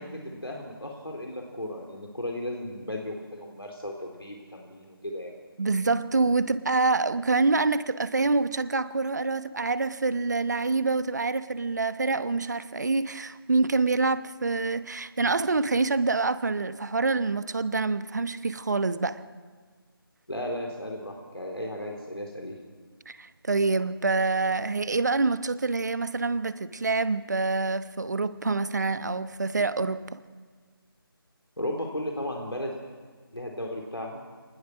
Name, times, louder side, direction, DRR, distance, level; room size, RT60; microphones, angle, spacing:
voice 1, 0.0-5.3 20.3-22.6 31.6-32.8 33.3-34.2, left 1 dB, 85° left, 0 dB, 4.0 m, -35 dB
voice 2, 5.6-19.2 23.1-30.2, right 3 dB, 45° right, 13 dB, 1.1 m, -26 dB
25.5 x 20.0 x 6.1 m, 1.5 s
figure-of-eight pair, 160°, 13 cm